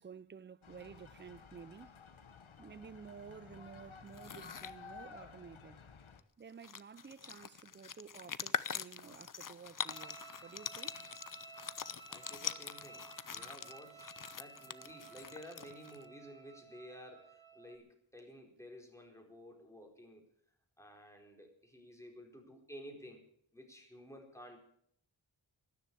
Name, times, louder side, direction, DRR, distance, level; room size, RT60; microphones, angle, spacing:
voice 1, 0.0-2.0 2.6-5.8 6.4-11.0, right 6 dB, 25° right, 0.5 m, -52 dB
sound 1, 0.6-6.2, left 5 dB, 90° left, 1.1 m, -54 dB
sound 2, 4.1-4.7 6.2-6.3 6.5-16.0, left 7 dB, 45° left, 0.6 m, -43 dB
sound 3, 9.9-17.8, right 4 dB, 80° right, 2.2 m, -55 dB
voice 2, 12.1-20.2 20.8-23.3 23.5-24.6, equal, 5° left, 4.1 m, -53 dB
13.0 x 10.5 x 8.5 m
wide cardioid pair, 55°, 46 cm